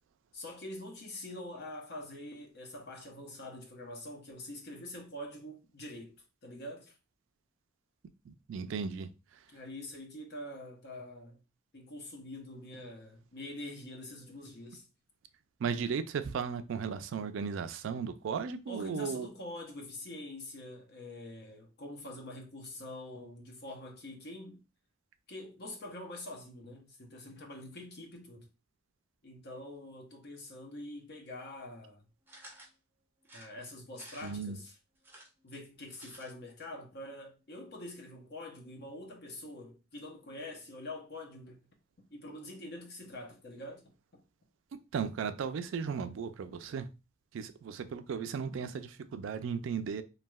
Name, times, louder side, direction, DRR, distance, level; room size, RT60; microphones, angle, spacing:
voice 1, 0.3-6.2 6.4-6.9 9.5-11.4 11.7-14.9 18.7-24.6 25.3-28.5 29.2-32.0 33.3-34.7 35.4-41.6 42.1-43.8, left 1 dB, 55° left, 0.8 m, -45 dB
voice 2, 8.3-9.1 15.6-19.3 34.2-34.6 44.9-46.9 47.3-50.0, right 6 dB, 70° right, 0.3 m, -36 dB
sound 1, 32.3-32.7 33.2-34.5 35.0-36.3 36.6-36.7 36.9-37.0, right 1 dB, 10° right, 0.7 m, -53 dB
3.1 x 2.7 x 2.2 m
head